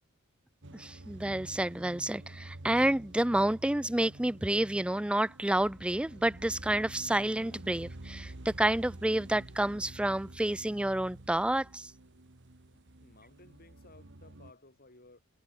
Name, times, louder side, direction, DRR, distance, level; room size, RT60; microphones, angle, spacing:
sound 1, 0.6-14.5, right 1 dB, 55° right, 1.7 m, -49 dB
voice 1, 0.7-11.9, right 1 dB, 5° right, 0.4 m, -29 dB
voice 2, 13.0-15.2, left 2 dB, 45° left, 6.3 m, -57 dB
head